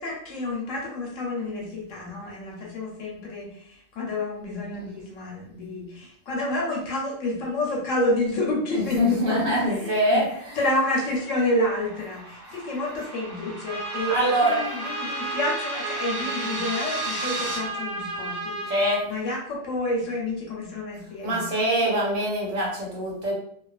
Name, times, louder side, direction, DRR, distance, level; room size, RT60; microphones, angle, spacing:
voice 1, 0.0-18.7 19.0-22.0, left 1 dB, 70° left, -1 dB, 1.0 m, -29 dB
voice 2, 8.7-10.7 14.1-14.6 18.7-19.0 21.2-23.3, right 1 dB, 75° right, -3 dB, 1.3 m, -24 dB
sound 1, 9.9-17.6, right 2 dB, 55° right, 0.7 m, -37 dB
Trumpet, 13.6-19.0, right 2 dB, 5° right, 0.7 m, -32 dB
2.4 x 2.4 x 2.3 m, 0.67 s
omnidirectional pair, 1.4 m